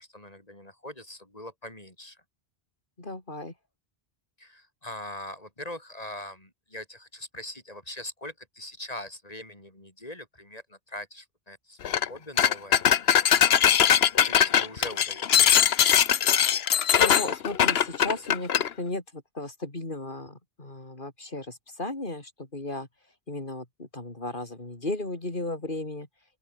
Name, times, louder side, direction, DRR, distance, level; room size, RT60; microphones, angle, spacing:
voice 1, 0.0-2.2 4.4-16.1, left 1 dB, 35° left, 5.2 m, -42 dB
voice 2, 3.0-3.5 17.0-22.9 23.3-26.1, left 2 dB, 50° left, 4.0 m, -35 dB
sound 1, 11.8-12.1 12.4-18.7, left 9 dB, 70° left, 1.1 m, -21 dB
open air
omnidirectional pair, 1.1 m